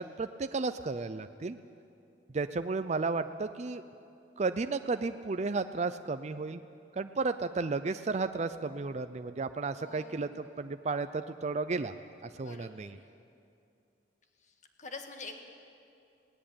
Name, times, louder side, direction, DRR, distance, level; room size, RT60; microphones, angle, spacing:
voice 1, 0.0-1.6 2.3-3.8 4.4-6.6 6.9-11.9 12.2-13.0, right 3 dB, 40° right, 10 dB, 0.5 m, -33 dB
voice 2, 9.8-10.4 12.3-13.1 14.4-15.4, left 3 dB, 45° left, 5 dB, 1.8 m, -47 dB
19.0 x 17.5 x 8.7 m, 2.6 s
head